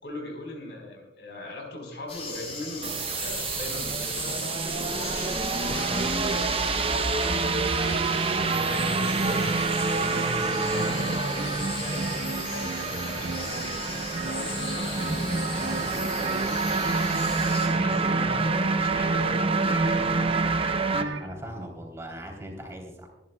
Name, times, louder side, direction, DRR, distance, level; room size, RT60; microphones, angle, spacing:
voice 1, 0.0-5.4 5.7-7.0 8.3-9.5 9.8-16.6 17.6-20.4, left 1 dB, 70° left, 2 dB, 4.5 m, -39 dB
sound 1, 2.1-17.7, left 3 dB, 35° left, 3.8 m, -38 dB
sound 2, 2.8-21.0, right 4 dB, 35° right, 0.8 m, -28 dB
voice 2, 5.6-6.0 6.3-6.5 21.2-23.1, equal, 15° right, 1 dB, 3.4 m, -39 dB
sound 3, 7.3-21.4, right 3 dB, 80° right, 1.4 m, -33 dB
25.0 x 11.0 x 2.3 m, 1.1 s
head